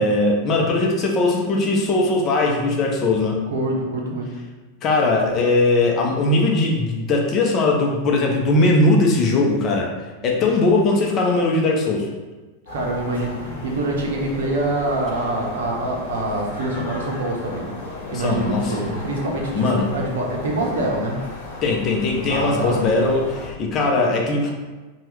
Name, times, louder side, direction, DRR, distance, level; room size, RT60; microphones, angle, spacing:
voice 1, 0.0-3.4 4.8-9.9 10.2-12.1 18.1-18.9 19.5-19.9 21.6-24.5, left 2 dB, 35° left, 0 dB, 0.6 m, -19 dB
voice 2, 3.5-4.3 12.7-17.7 18.1-21.2 22.3-22.8, right 1 dB, 70° right, -1 dB, 0.6 m, -25 dB
sound 1, 12.7-23.5, left 2 dB, 65° left, 1.0 m, -35 dB
2.9 x 2.3 x 3.2 m, 1.2 s
hypercardioid pair, 95°, 0 cm